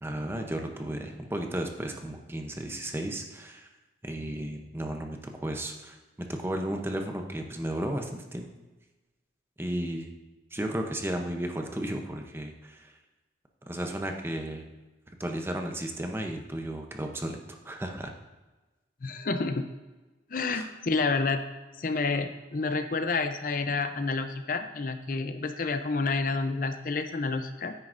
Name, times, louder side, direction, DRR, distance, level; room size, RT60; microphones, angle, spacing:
voice 1, 0.0-3.7 4.0-6.0 6.3-8.5 9.6-10.1 10.5-12.9 13.7-14.6 15.2-17.4 17.6-18.1 20.5-20.7, right 1 dB, 15° right, 3 dB, 0.7 m, -34 dB
voice 2, 19.0-19.7 20.3-21.4 21.8-27.7, left 3 dB, 50° left, 8 dB, 0.5 m, -29 dB
9.5 x 9.3 x 2.6 m, 1.2 s
head